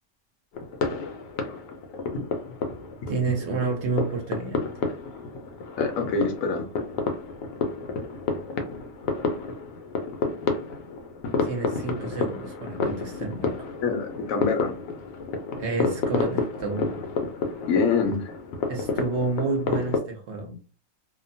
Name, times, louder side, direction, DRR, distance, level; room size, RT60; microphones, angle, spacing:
sound 1, 0.5-20.0, left 4 dB, 90° left, 1.2 m, -30 dB
voice 1, 3.1-4.7 11.4-13.7 15.5-17.1 18.7-20.6, right 3 dB, 55° right, 0.8 m, -30 dB
voice 2, 5.8-6.6 13.8-14.7 17.7-18.3, left 4 dB, 70° left, 0.9 m, -25 dB
2.8 x 2.1 x 2.6 m
omnidirectional pair, 1.8 m